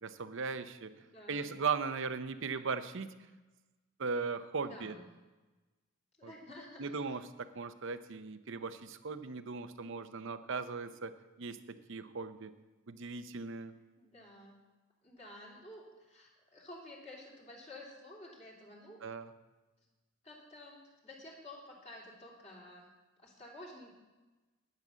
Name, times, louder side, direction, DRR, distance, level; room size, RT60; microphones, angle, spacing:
voice 1, 0.0-0.9 1.3-3.3 4.0-4.9 6.2-6.3 6.8-12.5 12.9-13.7 19.0-19.3, right 5 dB, 65° right, 11 dB, 0.7 m, -38 dB
voice 2, 1.0-1.5 4.6-5.0 6.2-6.9 13.7-14.5 15.0-19.0 19.8-19.9 20.2-22.9 23.2-23.9, left 1 dB, 35° left, -4 dB, 2.8 m, -52 dB
11.0 x 9.6 x 6.3 m, 1.2 s
head